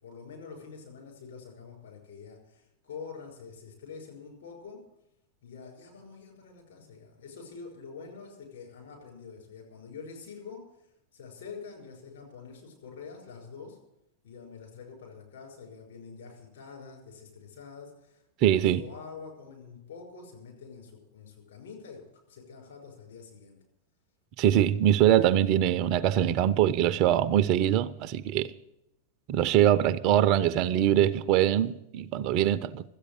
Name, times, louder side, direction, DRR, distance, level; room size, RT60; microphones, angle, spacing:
voice 1, 0.0-4.8 5.4-10.6 11.1-13.8 14.2-23.6, left 5 dB, 60° left, 5.7 m, -46 dB
voice 2, 18.4-18.8 24.4-28.5 29.3-32.8, right 11 dB, 40° right, 0.5 m, -23 dB
13.5 x 8.4 x 8.6 m
figure-of-eight pair, 90°, 0 cm